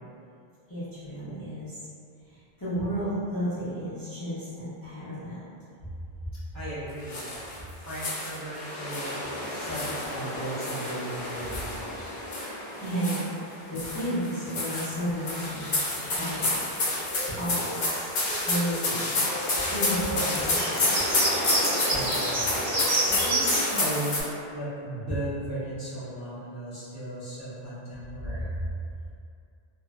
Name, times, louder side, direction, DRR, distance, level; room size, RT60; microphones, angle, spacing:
voice 1, 0.7-1.8 2.3-5.5 12.8-15.7 16.1-16.6 17.3-17.6 18.4-19.2 19.7-20.8, equal, 25° left, -14 dB, 0.7 m, -32 dB
voice 2, 6.2-7.2 7.8-9.2 9.5-12.1 21.9-22.6 22.8-28.6, right 1 dB, 15° right, -14 dB, 0.9 m, -36 dB
sound 1, 7.1-7.6 7.9-13.4 13.8-24.2, left 2 dB, 60° left, 0.8 m, -29 dB
sound 2, 15.1-17.9 18.2-18.8 19.1-23.9, right 1 dB, 90° right, 0.9 m, -32 dB
3.0 x 2.6 x 2.3 m, 2.4 s
omnidirectional pair, 1.0 m